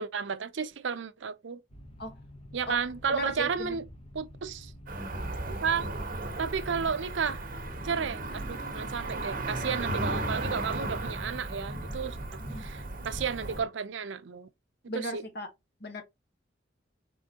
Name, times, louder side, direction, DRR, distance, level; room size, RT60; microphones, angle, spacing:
voice 1, 0.0-1.6 2.5-3.8 4.1-4.7 5.5-5.9 6.4-7.4 7.8-14.5 14.9-15.2, right 6 dB, 75° right, 0.6 m, -33 dB
sound 1, 1.7-13.7, left 1 dB, 30° left, 0.9 m, -49 dB
voice 2, 3.1-3.8 12.4-12.6 14.9-15.5 15.8-16.0, equal, 60° left, 1.3 m, -36 dB
Cricket / Motor vehicle (road), 4.9-13.6, right 2 dB, 50° right, 1.1 m, -35 dB
4.4 x 3.6 x 2.8 m
head